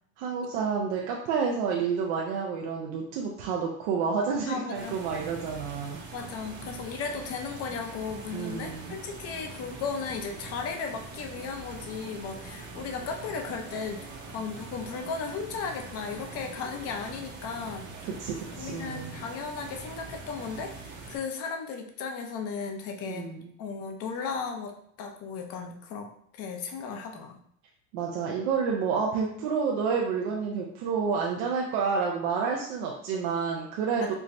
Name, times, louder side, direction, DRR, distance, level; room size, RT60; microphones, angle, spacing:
voice 1, 0.2-6.0 8.3-9.0 18.1-19.2 23.1-23.5 27.9-34.1, right 5 dB, 75° right, -2 dB, 0.6 m, -29 dB
voice 2, 4.5-5.0 6.1-14.0 14.3-17.9 18.5-23.3 23.6-27.4 33.9-34.1, left 5 dB, 45° left, 4 dB, 0.6 m, -36 dB
sound 1, 4.7-21.2, right 3 dB, 35° right, 0.8 m, -43 dB
4.4 x 2.1 x 2.5 m, 0.66 s
supercardioid pair, 135°, 34 cm